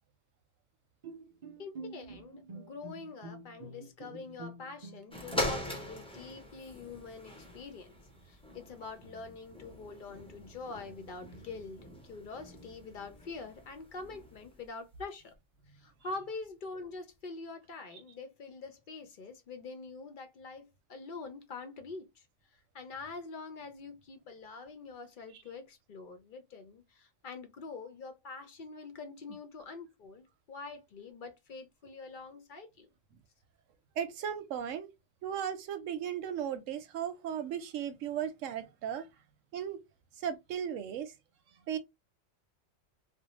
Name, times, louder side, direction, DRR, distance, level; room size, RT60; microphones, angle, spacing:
Bowed string instrument, 1.0-5.9, right 2 dB, 45° right, 0.6 m, -47 dB
voice 1, 1.6-7.9 8.3-15.3 15.7-22.3 22.5-32.9, left 4 dB, 55° left, 0.6 m, -45 dB
sound 1, 5.1-14.6 15.3-15.4, left 1 dB, 5° left, 0.4 m, -42 dB
voice 2, 34.0-34.9 35.2-39.1 39.5-39.8 40.2-41.1 41.7-41.8, right 9 dB, 90° right, 1.0 m, -36 dB
2.6 x 2.0 x 2.9 m
omnidirectional pair, 1.3 m